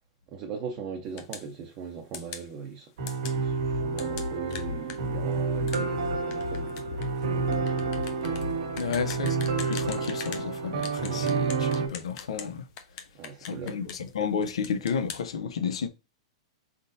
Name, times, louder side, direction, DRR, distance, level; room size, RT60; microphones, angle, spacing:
voice 1, 0.3-8.4 8.8-9.1 11.0-11.3 13.1-14.0, right 6 dB, 30° right, 0.7 m, -40 dB
sound 1, 1.2-1.5 2.1-2.5 3.1-3.4 4.0-10.5 10.8-12.5 12.8-14.1 14.4-15.2, left 8 dB, 35° left, 0.7 m, -42 dB
sound 2, 3.0-11.9, right 5 dB, 80° right, 1.4 m, -29 dB
sound 3, 3.3-9.9, left 6 dB, 70° left, 0.4 m, -39 dB
voice 2, 8.8-9.4 9.6-12.6 13.4-15.9, left 6 dB, 85° left, 0.7 m, -32 dB
4.2 x 3.7 x 2.6 m
supercardioid pair, 165°, 3 cm